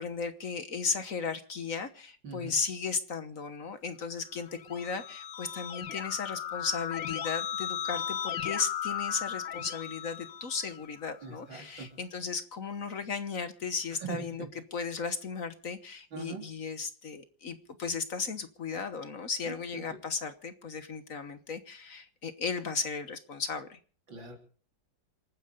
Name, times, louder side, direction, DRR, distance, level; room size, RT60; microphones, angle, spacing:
voice 1, 0.0-14.5 14.7-23.8, left 5 dB, 50° left, 10 dB, 1.4 m, -35 dB
voice 2, 2.2-2.6 11.2-11.9 14.0-14.5 16.1-16.5 19.4-20.0 24.1-24.4, right 6 dB, 85° right, 2 dB, 4.3 m, -41 dB
Keyboard (musical), 4.4-11.1, left 9 dB, 75° left, 1.8 m, -36 dB
27.5 x 9.4 x 5.1 m, 0.43 s
omnidirectional pair, 2.0 m